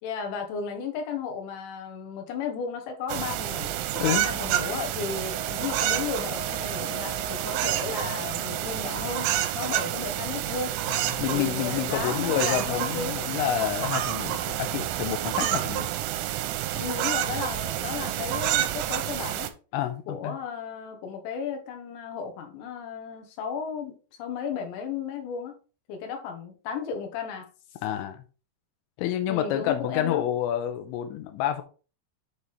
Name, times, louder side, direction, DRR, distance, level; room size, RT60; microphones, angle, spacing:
voice 1, 0.0-3.8 4.1-10.8 11.3-13.2 15.4-15.6 16.7-19.5 20.1-25.6 25.9-27.5 29.3-30.2, left 6 dB, 70° left, 3.2 m, -34 dB
sound 1, 3.1-19.5, right 13 dB, 85° right, 2.8 m, -29 dB
voice 2, 4.0-4.3 10.9-15.9 19.7-20.4 27.8-28.2 29.0-31.6, left 11 dB, 85° left, 2.7 m, -28 dB
Wind instrument woodwind instrument, 5.1-9.2, right 1 dB, 45° left, 2.5 m, -41 dB
8.6 x 4.1 x 3.3 m
omnidirectional pair, 6.0 m